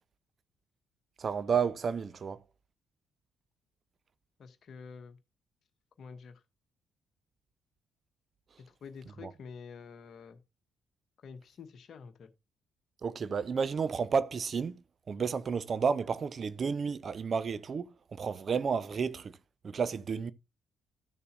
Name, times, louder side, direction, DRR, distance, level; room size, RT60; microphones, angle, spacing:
voice 1, 1.2-2.4 9.2-9.3 13.0-14.8 15.1-19.4 19.6-20.3, right 6 dB, 45° right, 0.7 m, -31 dB
voice 2, 4.4-5.2 6.0-6.4 8.8-10.4 11.2-12.3, left 5 dB, 50° left, 1.1 m, -48 dB
14.0 x 6.7 x 2.5 m
figure-of-eight pair, 45°, 0 cm